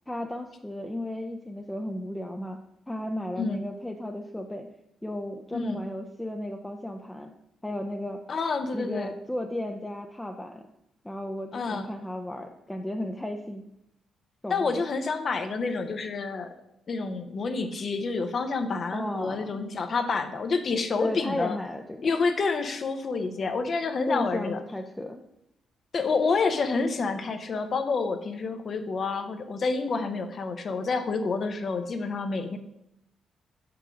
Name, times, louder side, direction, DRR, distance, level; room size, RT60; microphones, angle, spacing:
voice 1, 0.1-2.6 2.9-4.7 5.0-7.3 7.6-8.2 8.7-10.7 11.0-13.6 14.4-14.8 18.9-19.6 21.0-22.1 24.1-25.2, left 1 dB, 10° left, 3 dB, 0.5 m, -34 dB
voice 2, 5.5-5.8 8.3-9.1 11.5-11.9 14.5-16.5 16.9-21.6 22.0-24.6 25.9-32.6, left 4 dB, 50° left, 8 dB, 0.7 m, -28 dB
4.8 x 4.7 x 5.1 m, 0.83 s
supercardioid pair, 60°, 0 cm